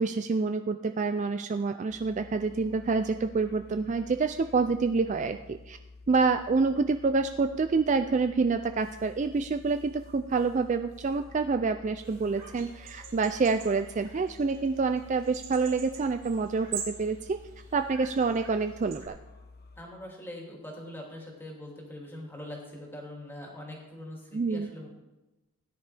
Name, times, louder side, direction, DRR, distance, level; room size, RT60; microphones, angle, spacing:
voice 1, 0.0-5.8 6.1-17.4 17.7-19.2 24.3-24.7, right 4 dB, 35° right, 9 dB, 0.3 m, -27 dB
sound 1, 1.9-19.8, left 3 dB, 45° left, 1.0 m, -51 dB
sound 2, 12.0-19.1, right 7 dB, 60° right, 3.8 m, -44 dB
voice 2, 19.8-24.9, left 1 dB, 10° left, -2 dB, 2.6 m, -42 dB
17.0 x 10.0 x 3.4 m, 1.0 s
head